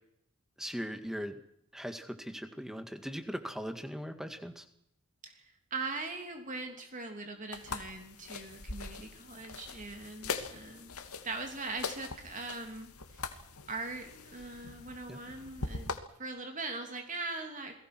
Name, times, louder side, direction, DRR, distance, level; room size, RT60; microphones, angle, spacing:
voice 1, 0.6-1.4 1.7-4.7 15.1-15.2, equal, ahead, 8 dB, 2.1 m, -39 dB
voice 2, 5.7-10.9 11.2-13.2 13.7-15.9 16.2-17.7, right 3 dB, 35° right, 4 dB, 3.1 m, -41 dB
sound 1, 7.5-16.0, left 4 dB, 80° left, 2.6 m, -42 dB
29.0 x 21.5 x 6.2 m, 0.74 s
head